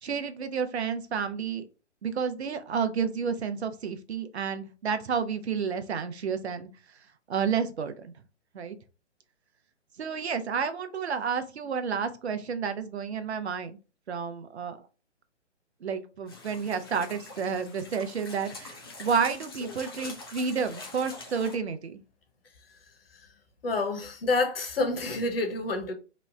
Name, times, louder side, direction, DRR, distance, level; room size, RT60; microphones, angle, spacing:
voice 1, 0.0-1.7 2.0-6.7 7.3-8.1 8.5-8.7 10.0-13.8 14.1-14.8 15.8-22.0, right 6 dB, 65° right, 0.6 m, -30 dB
sound 1, 16.3-21.6, left 3 dB, 20° left, 0.4 m, -44 dB
voice 2, 23.6-25.9, left 3 dB, 55° left, 0.9 m, -28 dB
3.0 x 2.1 x 3.6 m
figure-of-eight pair, 130°, 35 cm